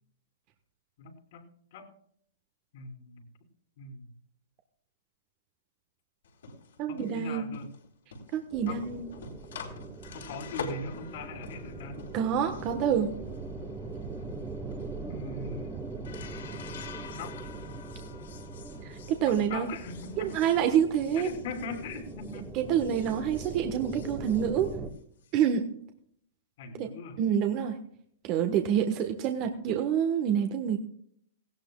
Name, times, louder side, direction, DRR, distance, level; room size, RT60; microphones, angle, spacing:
voice 1, 1.0-1.9 2.7-3.3 3.8-4.1 6.9-7.7 8.7-8.8 10.1-12.0 15.1-15.8 17.2-17.4 19.3-20.3 21.1-22.5 26.6-27.2, left 4 dB, 60° left, 4 dB, 3.3 m, -40 dB
sound 1, 6.2-22.4 22.7-25.3, left 5 dB, 75° left, 4.0 m, -46 dB
voice 2, 6.8-7.5 8.3-9.1 12.1-13.1 18.8-19.7 20.2-21.3 22.5-24.7 25.3-25.7 26.8-26.9 27.2-27.7 28.2-30.8, right 9 dB, 40° right, 5 dB, 1.3 m, -27 dB
sound 2, 8.5-24.9, right 4 dB, 15° right, 1.6 m, -41 dB
18.0 x 16.5 x 2.4 m, 0.65 s
hypercardioid pair, 125°, 0 cm